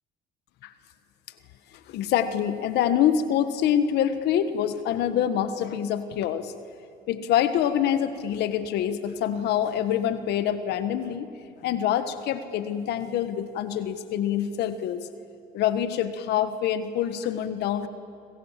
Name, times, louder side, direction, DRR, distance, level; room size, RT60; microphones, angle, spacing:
voice 1, 1.9-6.5 7.1-11.3 11.6-15.1 15.5-17.9, left 9 dB, 80° left, 11 dB, 1.5 m, -25 dB
28.0 x 26.0 x 7.5 m, 2.6 s
cardioid pair, 110°, 17 cm